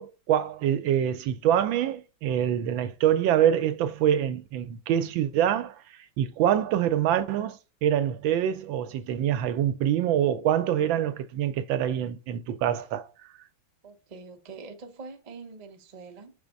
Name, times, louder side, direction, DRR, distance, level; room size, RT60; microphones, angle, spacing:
voice 1, 0.0-5.7 6.2-13.1, right 10 dB, 85° right, 1.4 m, -25 dB
voice 2, 13.8-16.3, right 4 dB, 45° right, 0.4 m, -44 dB
5.7 x 3.5 x 5.1 m
omnidirectional pair, 2.1 m